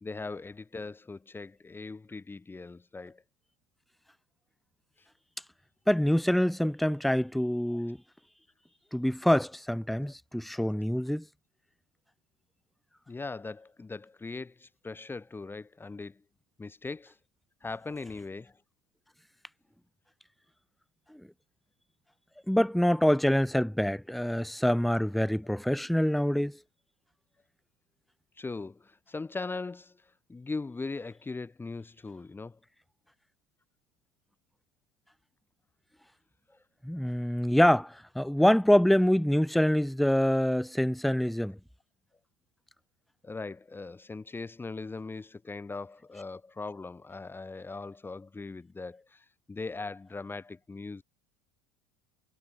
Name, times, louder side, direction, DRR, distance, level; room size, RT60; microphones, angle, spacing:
voice 1, 0.0-3.2 7.7-7.8 10.0-10.1 13.1-16.2 16.6-17.2 17.6-18.6 28.4-32.6 43.2-51.0, left 3 dB, 15° left, 2.6 m, -40 dB
voice 2, 5.9-8.0 8.9-11.3 21.1-21.2 22.5-26.6 36.8-41.6, equal, ahead, 0.4 m, -25 dB
hypercardioid pair, 75°, 13 cm